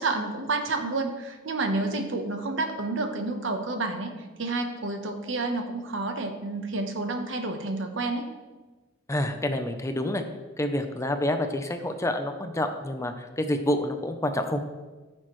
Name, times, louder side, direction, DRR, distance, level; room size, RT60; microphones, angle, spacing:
voice 1, 0.0-4.1 4.4-8.3, right 3 dB, 65° right, 6 dB, 1.0 m, -29 dB
voice 2, 9.1-10.2 10.6-14.6, left 1 dB, 15° left, 7 dB, 0.5 m, -28 dB
14.0 x 6.4 x 3.1 m, 1.2 s
head